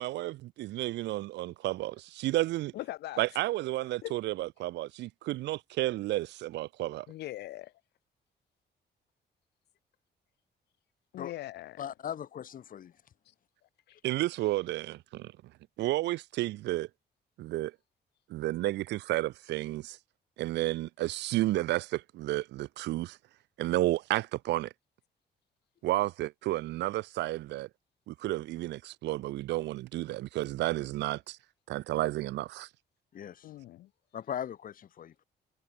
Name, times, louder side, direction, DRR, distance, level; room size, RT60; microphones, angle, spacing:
voice 1, 0.0-2.7 3.2-7.1 14.0-15.3 15.8-16.9 17.4-17.7 18.3-20.0 20.4-23.2 23.6-24.7 25.8-27.7 28.1-31.4 31.7-32.7, right 16 dB, 90° right, 0.4 m, -32 dB
voice 2, 2.7-3.2 4.0-4.1 7.1-7.7 11.1-11.9 13.3-13.4 13.9-14.0 14.4-14.5 33.4-33.9, left 15 dB, 75° left, 0.4 m, -41 dB
voice 3, 11.8-12.9 33.1-33.5 34.1-35.2, left 9 dB, 50° left, 1.5 m, -39 dB
cardioid pair, 135°, 17 cm